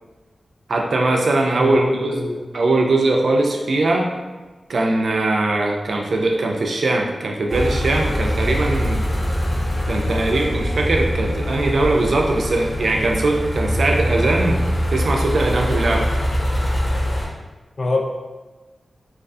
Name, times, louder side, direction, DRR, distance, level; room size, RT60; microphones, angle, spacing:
voice 1, 0.7-2.2 2.5-4.1 4.7-9.0 9.9-14.6 14.9-16.1, right 2 dB, 70° right, 1 dB, 0.3 m, -20 dB
voice 2, 1.6-2.5 17.8-18.0, left 2 dB, 45° left, 1 dB, 0.3 m, -24 dB
sound 1, 7.5-17.3, equal, 30° left, 0.7 m, -23 dB
2.4 x 2.3 x 2.4 m, 1.2 s
wide cardioid pair, 140°, 0 cm